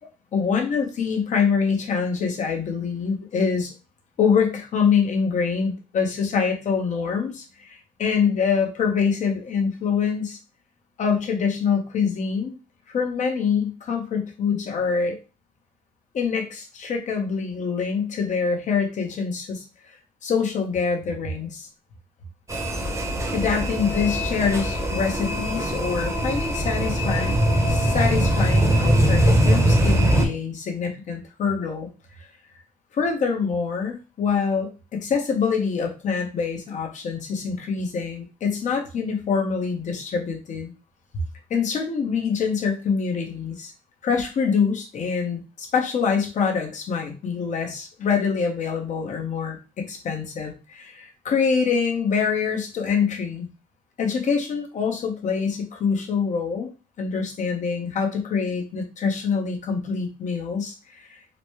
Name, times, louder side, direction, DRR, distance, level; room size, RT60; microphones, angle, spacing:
voice 1, 0.3-3.7 4.2-10.4 11.0-12.5 12.9-15.2 16.1-20.0 20.2-21.7 23.3-27.4 27.7-31.9 32.2-32.3 32.9-40.7 41.5-43.7 44.0-53.5 54.0-56.7 57.0-61.2, left 6 dB, 45° left, 2 dB, 1.1 m, -25 dB
sound 1, 22.5-30.3, right 1 dB, 15° right, 1.0 m, -21 dB
4.0 x 2.2 x 3.1 m, 0.32 s
cardioid pair, 110°, 17 cm